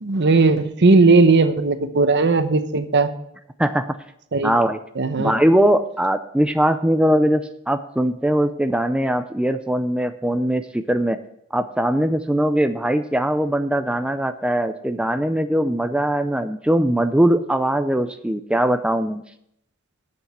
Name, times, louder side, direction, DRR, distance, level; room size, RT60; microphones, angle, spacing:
voice 1, 0.0-3.1 4.3-4.5 5.0-5.3, right 3 dB, 55° right, 9 dB, 0.9 m, -17 dB
voice 2, 4.4-4.8 5.2-11.2 11.5-19.2, right 1 dB, 5° right, 8 dB, 0.4 m, -20 dB
8.1 x 7.1 x 7.9 m, 0.75 s
head